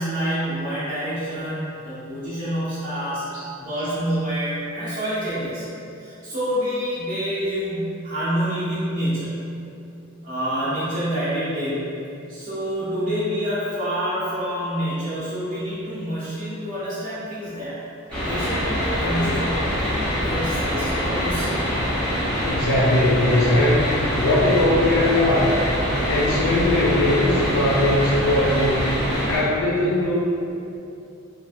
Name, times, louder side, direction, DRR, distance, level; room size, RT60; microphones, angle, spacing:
voice 1, 0.0-3.2 3.6-5.6 6.0-9.4 10.2-11.9 12.3-17.8 18.2-21.6, equal, 40° right, -13 dB, 0.6 m, -27 dB
sound 1, 18.1-29.4, equal, 5° left, 0.8 m, -24 dB
voice 2, 22.4-25.5 26.0-28.9 29.2-30.1, left 1 dB, 70° left, -6 dB, 0.4 m, -20 dB
3.1 x 2.1 x 2.7 m, 2.6 s
head